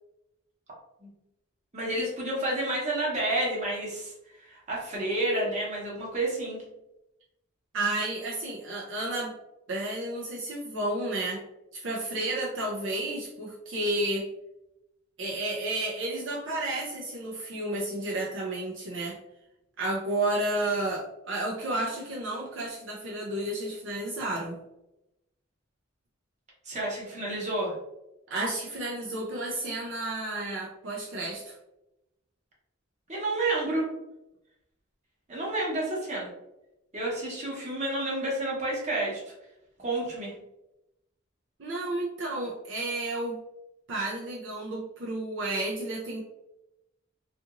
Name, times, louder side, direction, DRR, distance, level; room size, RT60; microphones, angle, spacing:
voice 1, 1.7-6.6 26.7-27.7 33.1-33.9 35.3-36.3 36.9-39.2 39.8-40.3, right 1 dB, 35° right, -4 dB, 0.9 m, -30 dB
voice 2, 7.7-9.3 9.7-11.4 11.7-14.3 15.2-19.2 19.8-24.6 28.3-31.5 41.6-43.4 43.9-46.2, right 2 dB, 65° right, -3 dB, 0.5 m, -31 dB
2.8 x 2.5 x 2.4 m, 0.89 s
head